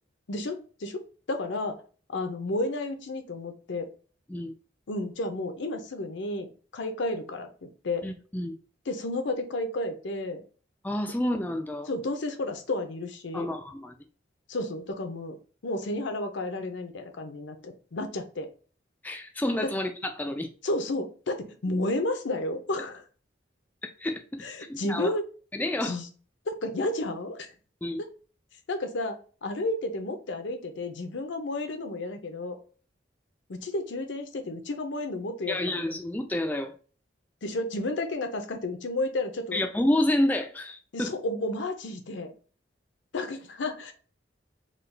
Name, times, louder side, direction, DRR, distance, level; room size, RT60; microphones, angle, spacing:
voice 1, 0.3-1.0 1.3-1.8 2.1-3.9 4.9-8.1 8.9-10.4 11.9-13.5 14.5-15.4 15.6-18.5 19.6-19.7 20.6-23.0 24.4-25.3 25.8-26.1 26.5-27.5 28.0-28.1 28.7-32.6 33.5-35.8 37.4-39.6 40.9-42.3 43.1-43.9, left 2 dB, 70° left, 0.6 m, -32 dB
voice 2, 8.0-8.6 10.8-11.9 13.3-13.9 19.0-19.9 20.2-20.5 23.8-25.1 25.5-26.0 27.8-28.0 35.5-36.7 39.5-41.1, left 1 dB, 10° left, 0.3 m, -29 dB
3.7 x 2.3 x 3.2 m
head